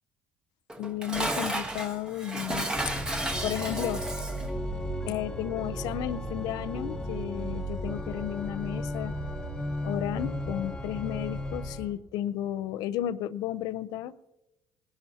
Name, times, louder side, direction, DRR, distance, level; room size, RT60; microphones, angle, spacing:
Dishes pots and pans, 0.7-4.5, right 1 dB, 10° right, 1.2 m, -32 dB
voice 1, 0.8-2.7 3.4-4.0 5.1-9.2 9.8-14.1, left 12 dB, 75° left, 0.5 m, -33 dB
Organ, 2.7-12.0, equal, 10° left, 1.1 m, -35 dB
20.5 x 11.5 x 2.8 m
cardioid pair, 120°, 7 cm